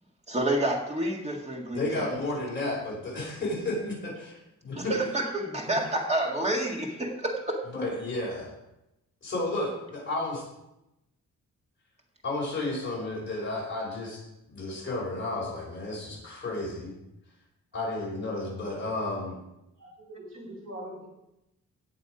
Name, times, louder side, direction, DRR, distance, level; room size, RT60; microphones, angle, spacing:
voice 1, 0.3-2.1 4.8-7.6, right 1 dB, 20° right, 0 dB, 2.0 m, -29 dB
voice 2, 1.7-4.9 5.7-5.8 7.7-8.5 9.2-10.4 12.2-16.9 17.7-19.3, left 2 dB, 35° left, -4 dB, 5.2 m, -32 dB
voice 3, 19.7-21.0, right 1 dB, 50° right, -9 dB, 5.6 m, -42 dB
17.5 x 6.9 x 5.0 m, 0.89 s
wide cardioid pair, 175°, 32 cm